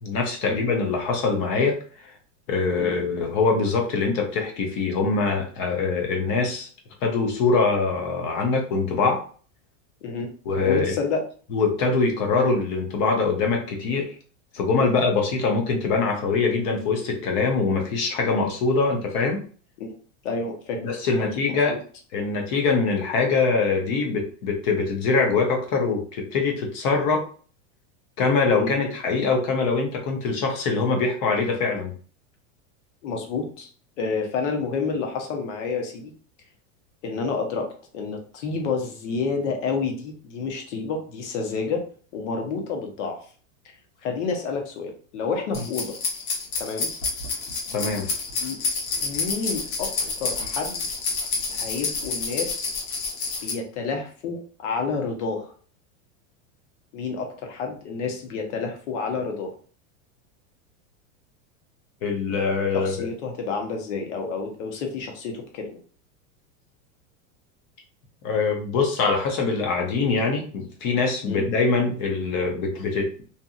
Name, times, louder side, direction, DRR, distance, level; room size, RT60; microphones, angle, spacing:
voice 1, 0.0-1.8 2.0-2.1 2.5-6.7 7.0-9.2 10.5-10.9 11.5-14.1 14.5-19.4 20.8-21.8 22.1-27.3 28.2-31.9 47.7-48.1 62.0-63.1 68.2-73.2, left 4 dB, 35° left, 2 dB, 0.6 m, -23 dB
voice 2, 10.6-11.2 14.8-15.0 19.8-20.0 20.2-20.8 21.2-21.3 21.7-21.8 28.6-28.9 33.0-33.7 34.0-36.1 37.0-41.8 42.1-43.2 44.0-45.9 46.6-46.9 48.4-48.6 49.0-49.9 50.2-50.8 51.5-52.8 53.4-55.5 56.9-59.5 62.7-65.7 71.3-71.5, left 4 dB, 60° left, 3 dB, 0.9 m, -29 dB
sound 1, 45.5-53.5, left 4 dB, 85° left, 1.1 m, -29 dB
2.8 x 2.4 x 2.3 m, 0.42 s
supercardioid pair, 170°, 40 cm